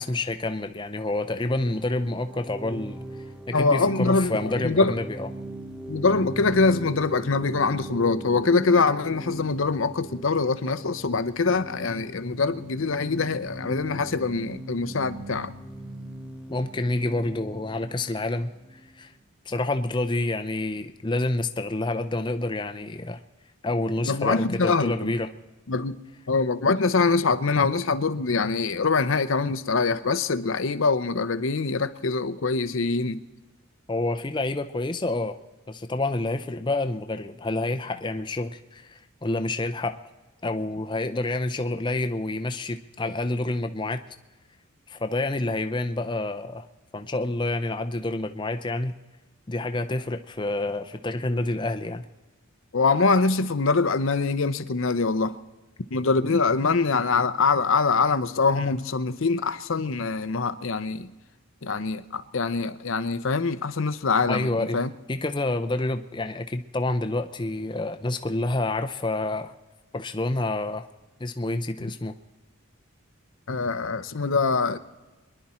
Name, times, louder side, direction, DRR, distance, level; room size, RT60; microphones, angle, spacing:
voice 1, 0.0-3.0 3.5-5.3 16.5-18.5 19.0-19.1 19.5-23.2 23.6-25.3 33.9-35.4 35.7-40.0 40.4-44.0 44.9-46.7 46.9-48.9 49.5-52.0 64.3-64.8 65.1-69.5 69.9-70.9 71.2-72.1, left 2 dB, 20° left, 0.5 m, -28 dB
sound 1, 1.4-19.0, right 1 dB, 5° right, 0.9 m, -39 dB
voice 2, 3.5-4.4 4.6-4.9 5.9-15.5 24.0-25.1 25.7-26.0 26.3-33.2 52.7-55.4 55.9-61.1 61.6-64.9 73.5-74.8, left 4 dB, 60° left, 0.7 m, -24 dB
24.5 x 11.0 x 4.3 m
head